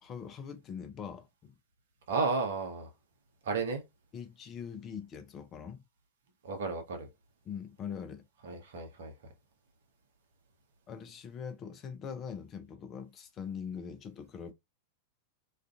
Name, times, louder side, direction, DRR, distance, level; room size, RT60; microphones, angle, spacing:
voice 1, 0.0-1.6 4.1-5.8 7.5-8.3 10.9-14.5, left 7 dB, 30° left, 0.5 m, -42 dB
voice 2, 2.1-2.9 3.4-3.8 6.4-7.1 8.4-9.1, right 4 dB, 60° right, 0.7 m, -33 dB
2.4 x 2.4 x 2.3 m
figure-of-eight pair, 90°, 0 cm